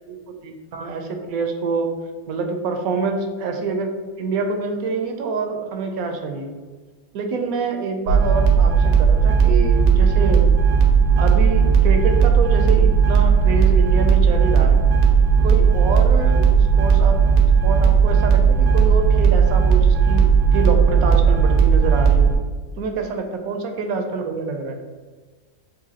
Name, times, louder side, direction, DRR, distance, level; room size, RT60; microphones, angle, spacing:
voice 1, 0.1-1.9 2.3-3.9 4.2-6.5 7.1-10.5 11.2-14.8 15.4-17.2 17.6-22.3 22.8-24.8, right 4 dB, 80° right, 4 dB, 1.1 m, -26 dB
sound 1, 8.1-22.4, right 6 dB, 50° right, 0.7 m, -15 dB
6.7 x 2.6 x 2.8 m, 1.4 s
omnidirectional pair, 1.5 m